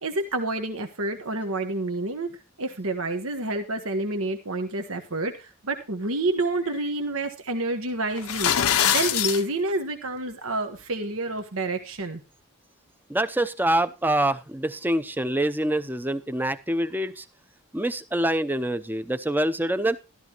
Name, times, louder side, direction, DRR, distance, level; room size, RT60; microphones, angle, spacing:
voice 1, 0.0-8.5 8.8-12.2, right 2 dB, 75° right, 1.3 m, -28 dB
sound 1, 8.2-9.4, left 9 dB, 85° left, 0.8 m, -23 dB
voice 2, 13.1-17.2 17.7-20.0, right 1 dB, 10° right, 0.6 m, -25 dB
13.5 x 13.0 x 3.0 m
head